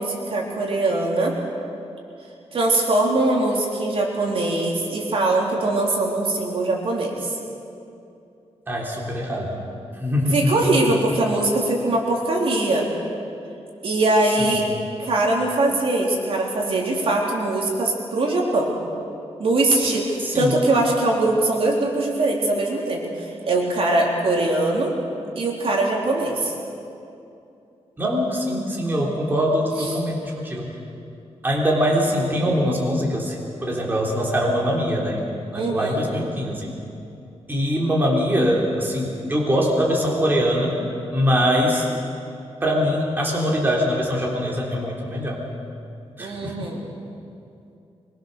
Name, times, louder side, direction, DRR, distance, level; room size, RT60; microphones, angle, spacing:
voice 1, 0.0-1.4 2.5-7.4 10.3-12.9 13.8-14.6 15.0-18.7 19.4-24.9 25.4-26.5 29.9-30.0 35.5-36.0 46.2-46.8, right 2 dB, 60° right, -2 dB, 3.7 m, -22 dB
voice 2, 8.7-9.6 10.0-10.7 14.5-14.6 20.2-20.5 28.0-30.7 31.4-35.2 35.5-36.7 37.5-40.8 41.1-41.9 42.6-45.4 46.2-46.7, equal, 20° right, -3 dB, 3.3 m, -23 dB
23.5 x 22.0 x 6.8 m, 2.6 s
wide cardioid pair, 150°, 11 cm